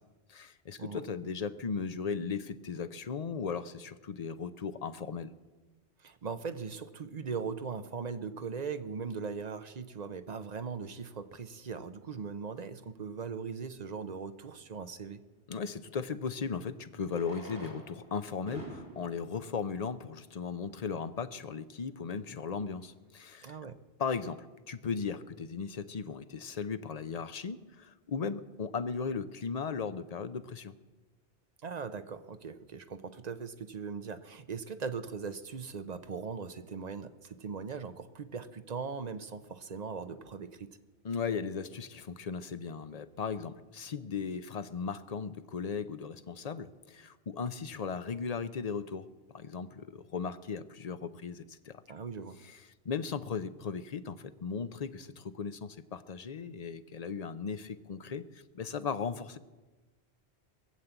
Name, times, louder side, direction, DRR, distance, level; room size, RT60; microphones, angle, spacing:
voice 1, 0.3-5.3 15.5-23.6 24.0-30.7 41.0-49.1 49.3-51.8 52.8-58.3 58.5-59.4, left 5 dB, 45° left, 11 dB, 0.7 m, -37 dB
voice 2, 6.0-15.2 23.4-23.8 31.6-40.8 51.9-52.4, right 5 dB, 45° right, 10 dB, 0.8 m, -39 dB
Fireworks, 13.4-13.5 15.8-15.9 17.0-20.7 21.5-21.6 21.8-21.9 22.1-22.2 22.7-22.9, right 1 dB, 75° right, 4.2 m, -49 dB
21.5 x 7.4 x 8.0 m, 1.2 s
omnidirectional pair, 1.1 m